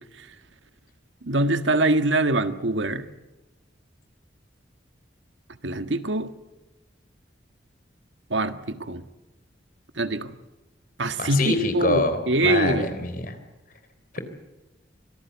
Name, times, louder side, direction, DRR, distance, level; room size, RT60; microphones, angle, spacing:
voice 1, 1.2-3.1 5.6-6.3 8.3-9.0 10.0-10.4 11.0-12.9, right 2 dB, 85° right, 9 dB, 1.6 m, -24 dB
voice 2, 11.2-13.4 14.1-14.2, left 2 dB, 50° left, 9 dB, 3.7 m, -25 dB
25.5 x 18.5 x 8.3 m, 1.0 s
head